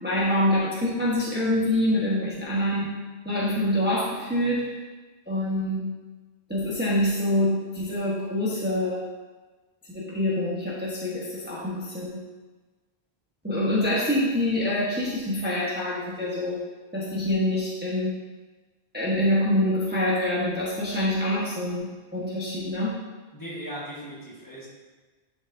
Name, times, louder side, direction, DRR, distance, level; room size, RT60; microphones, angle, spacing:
voice 1, 0.0-2.9 3.2-4.6 5.3-5.8 6.5-9.0 9.9-12.2 13.4-16.6 16.9-18.1 18.9-22.9, left 1 dB, 10° right, -7 dB, 1.2 m, -25 dB
voice 2, 23.3-24.7, equal, 20° left, -7 dB, 1.6 m, -38 dB
10.5 x 5.3 x 2.7 m, 1.3 s
omnidirectional pair, 1.1 m